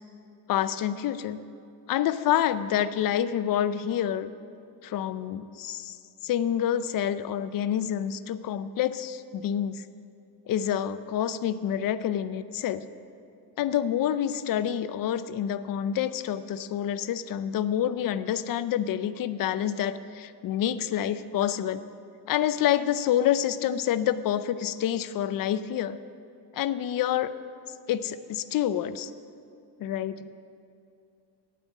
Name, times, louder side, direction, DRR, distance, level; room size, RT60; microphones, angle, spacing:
voice 1, 0.5-1.4 1.9-4.3 4.8-6.0 6.2-9.9 10.5-12.8 13.6-21.8 22.3-26.0 26.5-27.3 27.9-29.1 29.8-30.3, left 10 dB, 55° left, 13 dB, 0.5 m, -27 dB
9.0 x 8.7 x 8.1 m, 2.5 s
cardioid pair, 160°, 41 cm